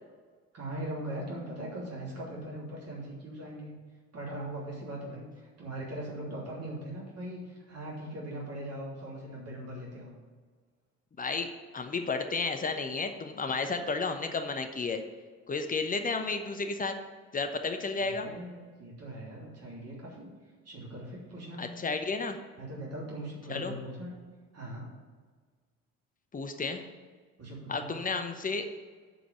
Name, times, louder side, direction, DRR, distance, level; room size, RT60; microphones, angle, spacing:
voice 1, 0.5-3.7 4.1-5.3 5.6-10.2 18.0-20.3 20.6-21.6 22.6-24.1 24.5-24.9 27.4-27.9, right 1 dB, 40° right, -4 dB, 3.0 m, -40 dB
voice 2, 11.2-11.5 11.7-15.0 15.5-16.9 17.3-18.3 21.6-22.4 23.5-23.7 26.3-26.8 27.7-28.8, left 4 dB, 20° left, 6 dB, 0.9 m, -32 dB
8.0 x 5.1 x 7.2 m, 1.5 s
figure-of-eight pair, 55°, 39 cm